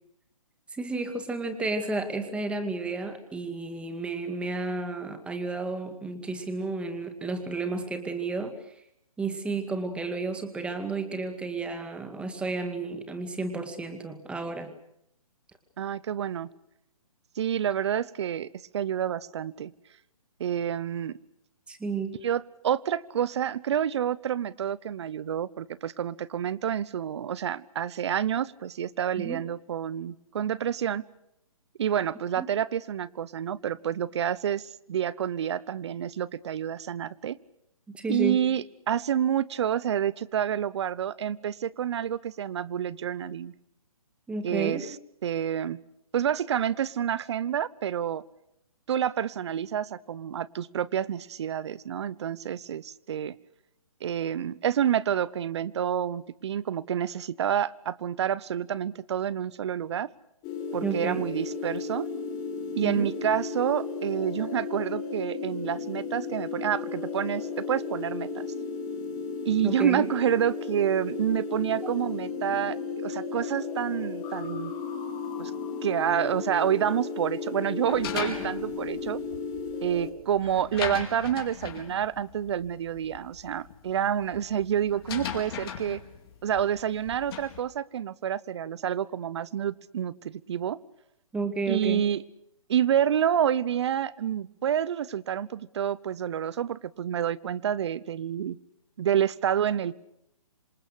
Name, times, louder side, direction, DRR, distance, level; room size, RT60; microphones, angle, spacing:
voice 1, 0.7-8.7 9.2-14.7 21.7-22.2 29.2-29.4 32.4-32.5 37.9-38.5 44.3-44.8 60.8-61.3 62.8-63.1 69.6-70.0 91.3-92.1, right 3 dB, 5° right, 8 dB, 2.2 m, -32 dB
voice 2, 15.8-16.5 17.4-19.7 20.4-21.2 22.2-31.0 31.8-37.4 38.1-43.5 44.4-44.9 45.2-45.8 46.1-48.2 48.9-53.3 54.0-60.1 60.7-62.1 62.7-68.5 69.4-74.7 75.4-75.5 75.8-79.2 79.8-86.0 86.4-90.8 91.7-92.2 92.7-98.6 99.0-100.0, right 9 dB, 50° right, 20 dB, 1.1 m, -28 dB
sound 1, 60.4-80.1, left 5 dB, 25° left, 3.4 m, -34 dB
sound 2, 77.9-87.6, left 8 dB, 45° left, 5.0 m, -39 dB
27.0 x 25.5 x 6.5 m, 0.78 s
hypercardioid pair, 150°, 18 cm